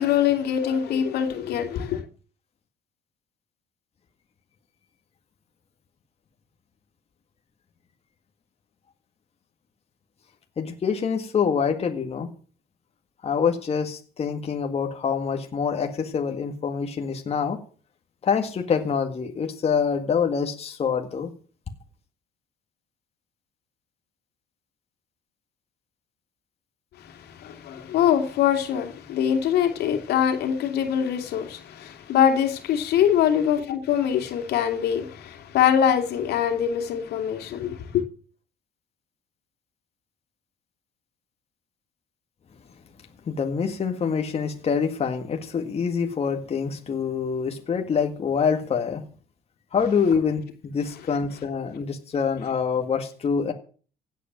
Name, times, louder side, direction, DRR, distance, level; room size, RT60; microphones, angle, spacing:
voice 1, 0.0-2.0 27.0-38.0, left 9 dB, 75° left, 2.9 m, -23 dB
voice 2, 10.6-12.3 13.2-17.6 18.2-21.3 43.3-49.0 49.7-53.5, left 6 dB, 35° left, 1.9 m, -25 dB
16.5 x 8.5 x 7.5 m
cardioid pair, 110°, 17 cm